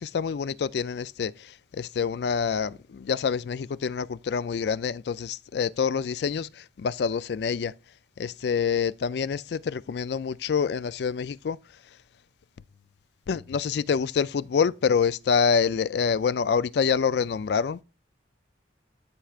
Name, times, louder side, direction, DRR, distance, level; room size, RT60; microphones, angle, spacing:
voice 1, 0.0-7.7 8.2-11.6 13.3-17.8, left 6 dB, 60° left, 0.3 m, -26 dB
13.0 x 4.5 x 2.4 m
head